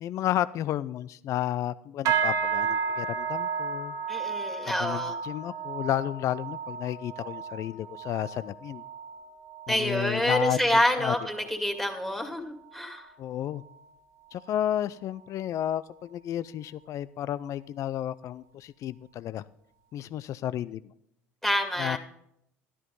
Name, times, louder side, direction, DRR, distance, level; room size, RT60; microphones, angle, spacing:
voice 1, 0.0-4.0 4.6-8.8 9.7-10.6 11.0-11.5 13.2-13.6 14.3-19.4 19.9-20.8 21.8-22.0, left 12 dB, 50° left, 16 dB, 0.4 m, -32 dB
sound 1, 2.1-11.6 11.9-12.3 12.7-13.1 13.6-13.7, right 6 dB, 60° right, 1.7 m, -33 dB
voice 2, 4.1-5.2 9.7-13.1 21.4-22.0, equal, 5° left, 3 dB, 2.4 m, -27 dB
12.0 x 11.0 x 3.9 m, 0.75 s
hypercardioid pair, 75°, 7 cm